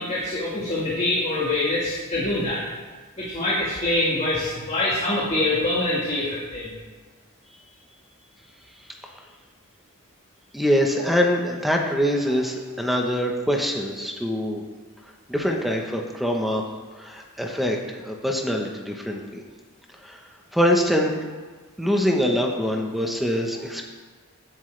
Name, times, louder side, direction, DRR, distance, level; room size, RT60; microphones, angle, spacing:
voice 1, 0.0-2.6 3.2-6.7, left 2 dB, 30° left, -5 dB, 1.8 m, -25 dB
voice 2, 10.5-14.6 15.3-16.6 17.0-19.4 20.0-20.2 20.5-21.1 21.8-23.8, equal, ahead, 1 dB, 1.0 m, -24 dB
16.0 x 7.7 x 3.4 m, 1.4 s
head